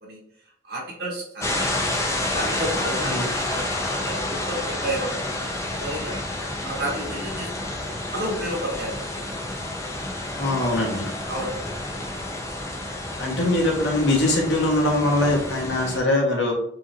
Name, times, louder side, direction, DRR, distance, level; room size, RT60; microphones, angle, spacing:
voice 1, 0.6-1.8 2.3-6.2 6.6-7.7 8.1-9.4 11.3-11.6, right 1 dB, 65° right, -3 dB, 1.5 m, -31 dB
sound 1, 1.4-16.0, left 1 dB, 15° left, 0.6 m, -29 dB
voice 2, 10.3-11.1 13.2-16.5, left 1 dB, 85° left, -1 dB, 1.2 m, -22 dB
4.8 x 2.6 x 2.9 m, 0.68 s
head